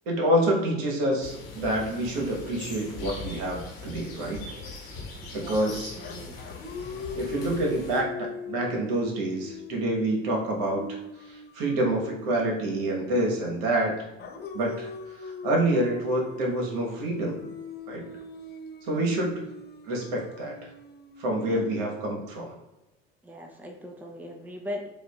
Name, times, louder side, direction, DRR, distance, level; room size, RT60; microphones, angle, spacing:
voice 1, 0.1-4.5 5.3-6.0 7.1-11.0 11.2-13.9 14.5-14.9 15.2-17.5 17.9-18.0 18.8-19.4 19.9-20.5 21.2-22.6, right 1 dB, 65° right, 0 dB, 1.3 m, -27 dB
sound 1, 1.2-8.0, left 3 dB, 75° left, 1.1 m, -41 dB
voice 2, 5.2-5.6 5.9-6.4 19.0-19.2 21.4-21.7 23.2-24.9, left 1 dB, 5° right, 1 dB, 0.7 m, -40 dB
sound 2, 5.6-13.6 14.2-22.3, left 3 dB, 35° left, 0.7 m, -41 dB
7.8 x 2.6 x 2.4 m, 0.96 s
hypercardioid pair, 65°, 30 cm